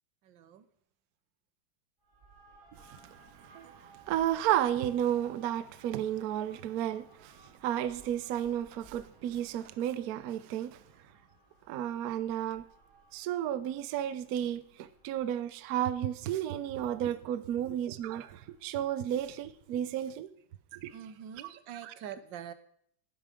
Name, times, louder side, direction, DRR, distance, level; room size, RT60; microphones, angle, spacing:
voice 1, 0.2-0.7 20.9-22.5, right 9 dB, 65° right, 1.4 m, -44 dB
sound 1, 2.0-19.9, right 3 dB, 35° right, 4.1 m, -61 dB
voice 2, 2.8-10.8 11.7-12.6 13.1-20.3 20.7-20.9 21.8-21.9, right 11 dB, 85° right, 0.8 m, -33 dB
11.0 x 10.5 x 5.0 m
omnidirectional pair, 2.4 m